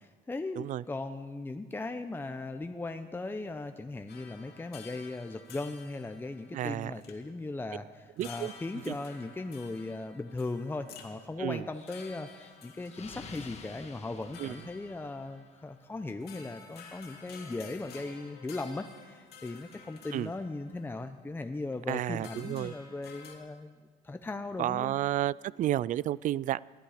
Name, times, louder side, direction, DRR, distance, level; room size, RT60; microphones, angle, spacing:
voice 1, 0.0-25.0, left 2 dB, 10° left, 7 dB, 0.7 m, -38 dB
sound 1, 4.1-7.7 8.2-21.8 22.2-23.3, left 6 dB, 70° left, 2.5 m, -52 dB
voice 2, 6.5-6.9 8.2-8.5 8.9-9.0 11.4-11.6 14.4-14.5 20.1-20.3 21.9-22.7 24.6-26.6, right 13 dB, 50° right, 22 dB, 0.4 m, -31 dB
Explosion, 11.7-15.6, left 5 dB, 40° left, 1.7 m, -50 dB
20.5 x 13.0 x 5.0 m, 1.4 s
cardioid pair, 110°, 17 cm